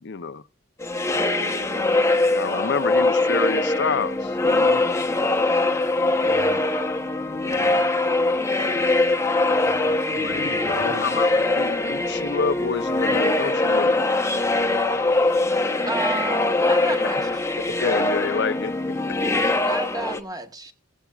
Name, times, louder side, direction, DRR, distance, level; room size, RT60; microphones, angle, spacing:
voice 1, 0.0-0.4 2.3-4.8 7.3-7.9 10.2-14.0 17.8-18.7, left 5 dB, 55° left, 0.6 m, -28 dB
sound 1, 0.8-20.2, left 2 dB, 15° left, 0.9 m, -22 dB
voice 2, 6.0-6.8 7.3-7.8 9.4-11.1, right 1 dB, 50° right, 2.7 m, -38 dB
voice 3, 15.9-17.4 19.6-20.7, right 2 dB, 15° right, 1.1 m, -31 dB
17.0 x 15.0 x 2.4 m
head